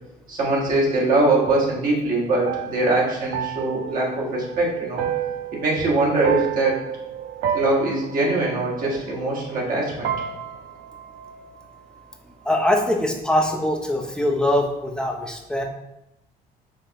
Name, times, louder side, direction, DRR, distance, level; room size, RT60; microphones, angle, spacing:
voice 1, 0.3-5.1 5.6-6.8 7.5-10.1, right 2 dB, 55° right, -3 dB, 1.5 m, -22 dB
sound 1, 0.8-9.8 10.0-12.1, right 9 dB, 75° right, 0.5 m, -31 dB
voice 2, 12.4-15.6, left 1 dB, 5° left, 1 dB, 0.6 m, -22 dB
5.1 x 3.3 x 2.9 m, 0.89 s
cardioid pair, 110°, 17 cm